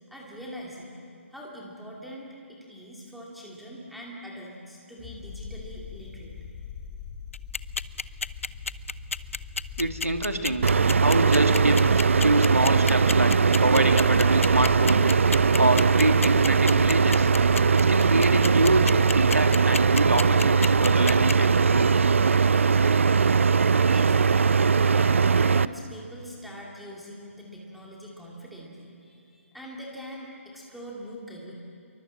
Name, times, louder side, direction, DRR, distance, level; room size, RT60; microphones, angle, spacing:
voice 1, 0.1-1.0 1.3-6.3 23.9-24.6 24.9-31.5, equal, ahead, -4 dB, 2.6 m, -43 dB
sound 1, 5.0-24.2, left 5 dB, 20° left, 2.7 m, -42 dB
sound 2, 7.3-21.3, left 4 dB, 65° left, 0.7 m, -30 dB
voice 2, 9.8-10.7 11.0-15.1 15.4-17.3 17.7-21.9, right 1 dB, 80° right, 6 dB, 2.4 m, -26 dB
sound 3, 10.6-25.7, right 5 dB, 60° right, 0.6 m, -20 dB
28.0 x 23.5 x 7.6 m, 2.5 s
figure-of-eight pair, 140°, 8 cm